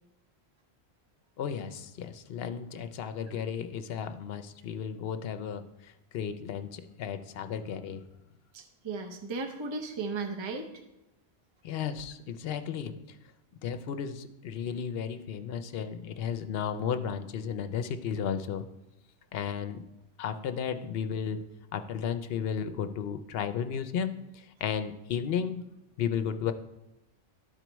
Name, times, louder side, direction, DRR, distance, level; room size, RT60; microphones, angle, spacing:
voice 1, 1.4-8.0 11.6-12.9 13.6-18.7 19.3-19.9 20.2-21.4 21.7-25.6 26.0-26.5, left 7 dB, 70° left, 9 dB, 0.8 m, -34 dB
voice 2, 8.5-10.7, right 3 dB, 30° right, 4 dB, 0.6 m, -35 dB
12.5 x 4.5 x 3.0 m, 0.95 s
omnidirectional pair, 1.1 m